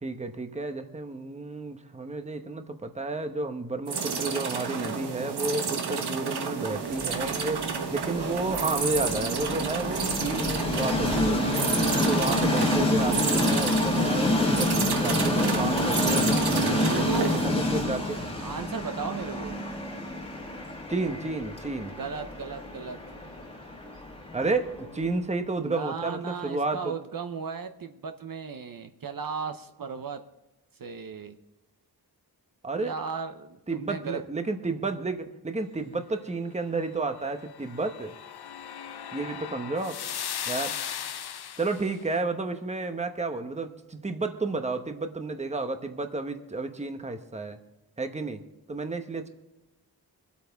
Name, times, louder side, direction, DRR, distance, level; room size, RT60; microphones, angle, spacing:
voice 1, 0.0-7.6 7.9-11.7 12.1-18.2 20.9-21.9 24.3-26.9 32.6-32.9 33.7-38.1 39.1-40.0 40.5-40.8 41.6-47.6 48.0-48.4 48.7-49.3, right 3 dB, 15° right, 7 dB, 1.0 m, -31 dB
sound 1, 3.9-17.5, right 5 dB, 75° right, 1.3 m, -30 dB
Train, 7.0-25.1, left 1 dB, 15° left, 1.7 m, -28 dB
voice 2, 16.7-17.4 17.8-19.7 21.9-23.0 25.6-30.2 30.8-31.4 32.8-34.2, right 5 dB, 55° right, 8 dB, 0.8 m, -36 dB
sound 2, 37.3-41.9, left 9 dB, 70° left, 0.7 m, -37 dB
24.5 x 8.4 x 3.5 m, 1.0 s
wide cardioid pair, 115°, 39 cm